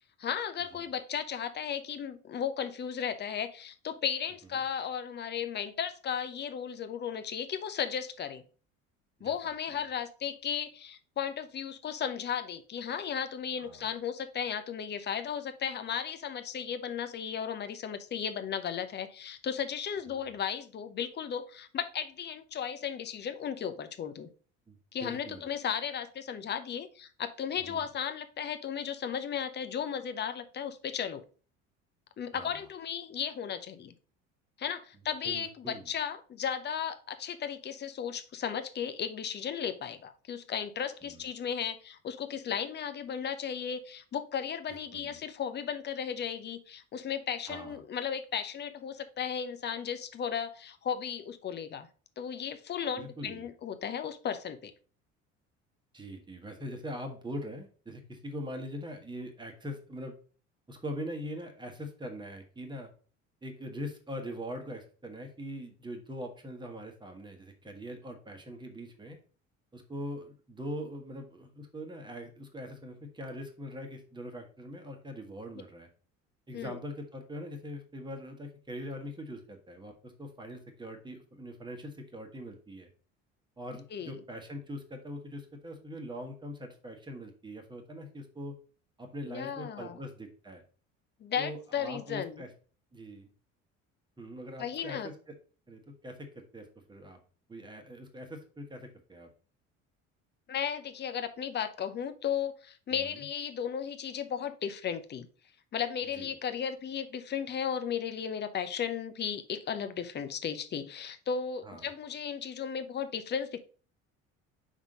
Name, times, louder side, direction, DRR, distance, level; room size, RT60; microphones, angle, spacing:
voice 1, 0.2-8.4 9.2-24.3 24.9-31.2 32.2-33.9 34.6-51.9 52.2-54.7 76.5-76.8 83.9-84.2 89.3-90.0 91.2-92.4 94.6-95.1 100.5-105.3 105.7-113.6, left 8 dB, 25° left, 10 dB, 0.7 m, -35 dB
voice 2, 13.6-13.9 20.1-20.3 24.7-25.5 27.6-27.9 32.3-32.5 35.2-35.9 41.0-41.2 44.7-45.2 47.5-47.8 53.0-53.5 55.9-60.1 60.7-62.9 63.4-69.2 69.7-75.9 76.5-82.9 83.6-88.5 89.0-90.6 91.4-92.5 92.9-93.3 94.2-95.3 95.7-97.2 97.5-99.3 102.9-103.3 106.1-106.3 111.6-111.9, equal, 10° right, 4 dB, 1.4 m, -42 dB
5.4 x 3.7 x 5.2 m, 0.39 s
figure-of-eight pair, 60°, 40 cm